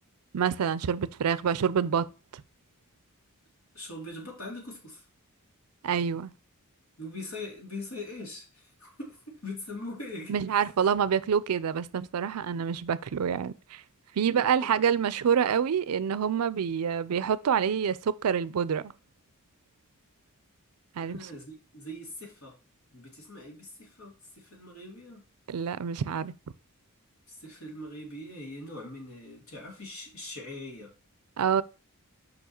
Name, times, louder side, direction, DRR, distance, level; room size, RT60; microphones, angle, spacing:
voice 1, 0.3-2.4 5.8-6.3 10.3-13.8 14.2-18.9 21.0-21.3 25.5-26.3 31.4-31.6, right 7 dB, 85° right, 0.4 m, -27 dB
voice 2, 3.7-5.0 7.0-10.9 14.4-14.7 21.0-22.6 22.9-25.2 27.3-30.9, left 1 dB, 70° left, 2.6 m, -42 dB
5.4 x 4.7 x 4.4 m
head